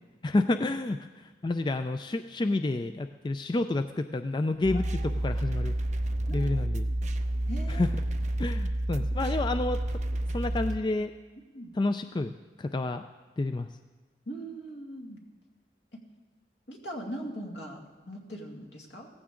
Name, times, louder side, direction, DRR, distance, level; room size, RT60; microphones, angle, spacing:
voice 1, 0.2-5.7 6.3-6.9 7.7-7.9 8.4-9.8 10.3-11.1 11.7-12.3 12.6-13.0 13.4-13.7, left 2 dB, 25° left, 9 dB, 0.3 m, -29 dB
sound 1, 4.6-10.8, right 1 dB, 40° right, 0.6 m, -30 dB
voice 2, 4.7-5.1 6.3-7.0 7.5-7.9 9.0-9.3 11.5-11.7 14.3-15.2 15.9-16.0 16.7-19.1, right 1 dB, 75° left, 1 dB, 2.3 m, -41 dB
16.5 x 15.0 x 3.8 m, 1.3 s
head